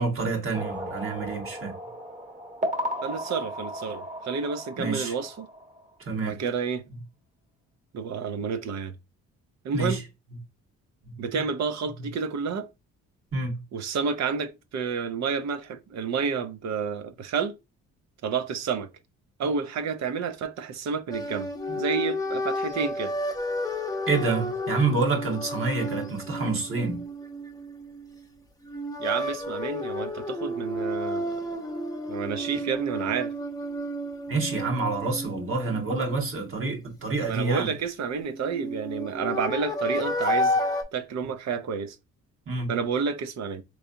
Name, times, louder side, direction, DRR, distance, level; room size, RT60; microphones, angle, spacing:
voice 1, 0.0-1.7 4.8-5.1 6.0-6.4 9.7-10.0 11.0-11.1 13.3-13.6 21.7-21.8 24.1-27.0 34.3-37.7 42.5-42.7, right 3 dB, 45° right, 1.5 m, -28 dB
sound 1, 0.5-5.9, equal, 25° right, 1.2 m, -35 dB
voice 2, 3.0-5.5 6.2-6.8 7.9-8.9 9.6-10.0 11.2-12.7 13.7-17.6 18.2-18.9 19.4-21.5 21.7-23.1 29.0-31.6 32.1-33.3 37.3-40.6 40.9-42.0 42.7-43.6, right 5 dB, 60° right, 0.7 m, -30 dB
sound 2, 21.1-28.2 28.6-36.5 38.2-40.8, left 1 dB, 10° left, 0.7 m, -31 dB
3.6 x 3.2 x 2.6 m
cardioid pair, 90°, 30 cm